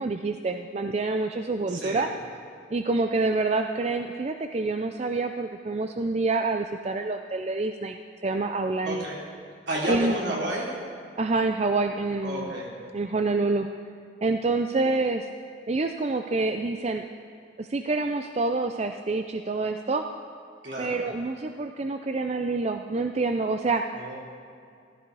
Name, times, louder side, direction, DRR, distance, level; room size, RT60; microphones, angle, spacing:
voice 1, 0.0-2.1 2.7-9.0 9.9-10.1 11.2-12.5 12.9-13.7 14.2-15.3 15.7-17.0 17.6-20.0 20.8-23.8, right 3 dB, 35° right, 6 dB, 0.4 m, -27 dB
voice 2, 1.7-2.1 8.8-9.2 9.7-10.7 12.2-12.7 20.6-21.0 23.9-24.2, right 1 dB, 60° right, -4 dB, 3.6 m, -31 dB
15.0 x 14.5 x 4.8 m, 2.3 s
head